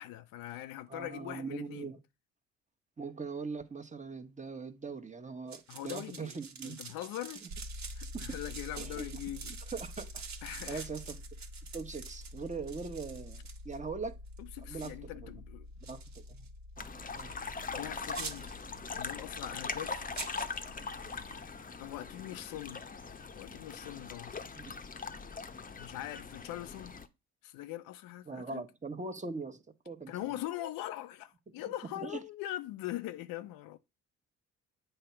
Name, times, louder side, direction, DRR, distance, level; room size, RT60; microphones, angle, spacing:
voice 1, 0.0-1.9 5.7-6.3 6.6-7.4 7.9-9.6 10.4-10.9 14.4-15.7 17.7-18.5 19.0-20.1 21.8-22.8 23.3-24.4 25.7-26.9 27.4-28.6 30.1-33.8, left 14 dB, 75° left, 0.7 m, -42 dB
voice 2, 0.9-2.0 3.0-6.8 8.1-8.4 8.8-9.0 9.7-11.2 11.7-14.1 14.6-15.3 15.8-16.5 16.8-16.9 17.1-17.3 24.5-24.7 28.3-30.4 32.0-32.2, right 4 dB, 20° right, 1.1 m, -41 dB
sound 1, 5.5-13.8 14.3-14.4 14.7-14.9 15.8-16.5 17.2-17.3 18.1-18.6 20.1-20.6, right 6 dB, 55° right, 1.3 m, -46 dB
sound 2, 7.5-21.4, left 1 dB, 85° right, 1.3 m, -48 dB
sound 3, 16.8-27.1, left 4 dB, 25° left, 0.9 m, -41 dB
7.8 x 2.9 x 5.7 m
hypercardioid pair, 60°, 35 cm